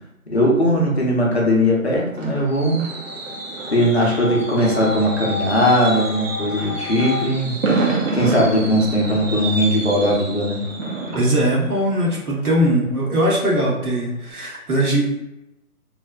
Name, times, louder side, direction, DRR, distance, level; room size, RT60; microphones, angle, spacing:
voice 1, 0.3-2.8 3.7-7.6 8.1-10.6, equal, 45° left, -3 dB, 0.7 m, -19 dB
Fireworks, 1.5-13.2 13.6-13.9 14.1-14.2, right 3 dB, 60° right, 0.7 m, -29 dB
sound 1, 2.2-7.2, left 4 dB, 35° right, 0.9 m, -32 dB
voice 2, 11.1-15.1, right 1 dB, 80° right, -3 dB, 1.2 m, -20 dB
3.1 x 2.0 x 2.3 m, 0.88 s
figure-of-eight pair, 170°, 44 cm